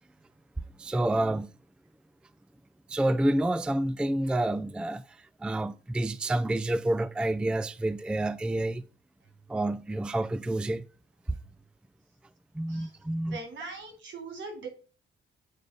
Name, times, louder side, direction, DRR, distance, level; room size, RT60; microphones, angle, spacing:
voice 1, 0.8-1.5 2.9-8.8 9.5-10.8 12.5-13.4, right 1 dB, 5° right, 0.3 m, -28 dB
voice 2, 13.3-14.7, right 3 dB, 70° right, 3.6 m, -40 dB
8.0 x 3.8 x 5.1 m
cardioid pair, 90°, 20 cm